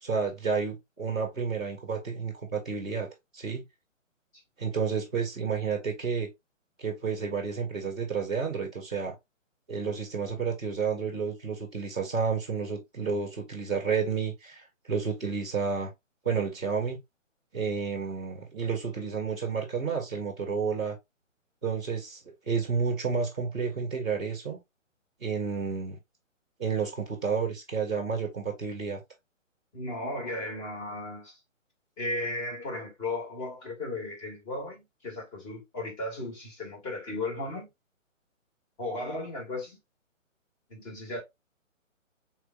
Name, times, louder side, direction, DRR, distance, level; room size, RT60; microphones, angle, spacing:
voice 1, 0.0-3.1 3.3-3.6 4.6-6.3 6.8-9.1 9.7-15.9 16.2-17.0 17.5-21.0 21.6-22.2 22.5-24.6 25.2-26.0 26.6-29.0, right 5 dB, 5° left, 0.4 m, -30 dB
voice 2, 29.7-31.4 32.0-37.7 38.8-39.8 40.7-41.2, left 2 dB, 25° left, 2.1 m, -35 dB
4.9 x 4.2 x 2.3 m
hypercardioid pair, 150°, 39 cm